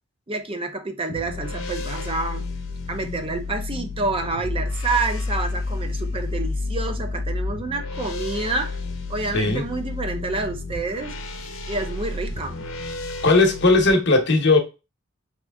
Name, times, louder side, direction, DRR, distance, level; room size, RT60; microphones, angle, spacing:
voice 1, 0.3-2.4 2.9-8.7 9.1-11.1 11.7-12.6, right 3 dB, 30° right, 0.6 m, -28 dB
sound 1, 1.1-13.9, left 3 dB, 90° left, 0.7 m, -30 dB
voice 2, 9.3-9.6 13.2-14.6, left 3 dB, 60° left, 0.9 m, -17 dB
3.2 x 2.9 x 3.4 m
head